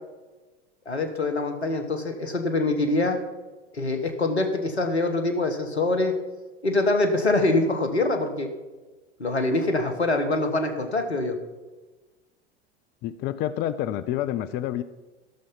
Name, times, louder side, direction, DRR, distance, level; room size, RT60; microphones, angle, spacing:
voice 1, 0.8-3.2 3.7-6.1 6.6-8.5 9.2-11.4, left 2 dB, 85° left, 6 dB, 1.4 m, -24 dB
voice 2, 13.0-14.8, left 12 dB, 30° left, 13 dB, 0.4 m, -28 dB
13.5 x 6.8 x 5.4 m, 1.2 s
figure-of-eight pair, 80°, 32 cm